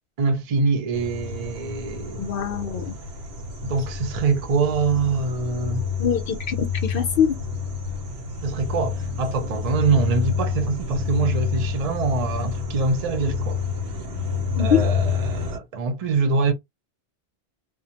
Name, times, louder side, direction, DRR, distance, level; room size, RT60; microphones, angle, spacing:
voice 1, 0.2-2.3 3.6-5.8 8.4-13.6 14.6-16.5, right 4 dB, 45° right, 0.6 m, -24 dB
sound 1, 0.9-15.6, left 5 dB, 85° right, 1.0 m, -28 dB
voice 2, 2.1-2.9 6.0-7.4 13.2-13.3 14.6-14.9, left 7 dB, 65° left, 0.7 m, -24 dB
2.3 x 2.0 x 2.7 m
omnidirectional pair, 1.1 m